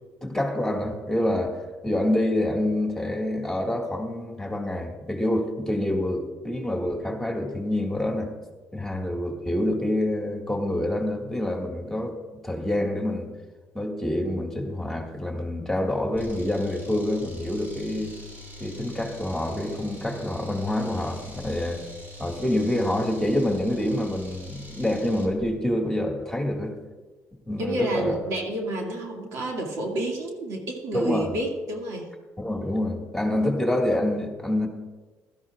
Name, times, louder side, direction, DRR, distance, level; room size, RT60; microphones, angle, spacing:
voice 1, 0.2-1.6 1.8-8.3 8.7-12.2 12.4-13.3 13.7-18.1 18.6-21.8 22.2-26.7 27.5-28.2 30.9-31.3 32.4-34.7, left 1 dB, 5° left, 0 dB, 2.0 m, -27 dB
sound 1, 16.2-25.4, left 1 dB, 40° right, 4.5 m, -43 dB
voice 2, 27.6-32.1, right 1 dB, 80° right, 0 dB, 2.3 m, -30 dB
16.5 x 12.5 x 2.5 m, 1.3 s
cardioid pair, 100°, 5 cm